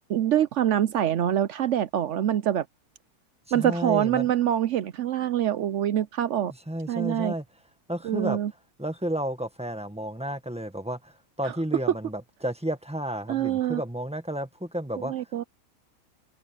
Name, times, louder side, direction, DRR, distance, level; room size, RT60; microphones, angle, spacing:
voice 1, 0.1-2.6 3.5-6.5 6.9-7.3 8.0-8.5 13.3-13.8 15.0-15.4, right 11 dB, 65° right, 0.7 m, -25 dB
voice 2, 3.5-4.3 6.7-7.4 7.9-8.4 8.8-15.1, right 1 dB, 5° right, 1.5 m, -32 dB
open air
omnidirectional pair, 1.7 m